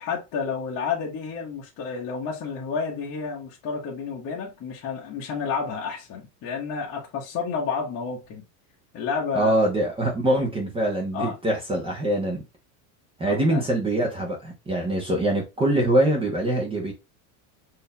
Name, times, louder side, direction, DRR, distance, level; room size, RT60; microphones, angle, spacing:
voice 1, 0.0-8.4 8.9-9.5 11.1-11.4 13.2-13.6, left 5 dB, 35° left, 1.0 m, -30 dB
voice 2, 9.3-12.4 13.2-16.9, right 1 dB, 15° right, 0.9 m, -23 dB
6.2 x 2.8 x 2.2 m
cardioid pair, 160°, 38 cm